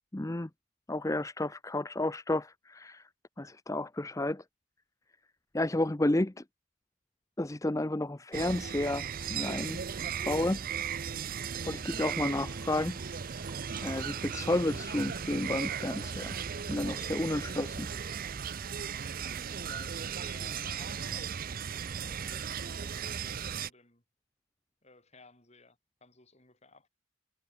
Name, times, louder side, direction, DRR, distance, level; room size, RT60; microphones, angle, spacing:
voice 1, 0.1-0.5 0.9-3.0 3.4-4.4 5.5-6.4 7.4-9.8 10.3-10.6 11.6-13.2 13.8-16.4 16.7-17.9, left 1 dB, 15° left, 0.6 m, -31 dB
sound 1, 8.3-23.7, right 7 dB, 45° right, 0.6 m, -37 dB
Water / Liquid, 11.7-17.3 17.6-17.7 18.1-18.2, right 6 dB, 25° right, 6.7 m, -56 dB
voice 2, 19.2-24.0 24.8-26.9, left 2 dB, 30° left, 7.6 m, -58 dB
head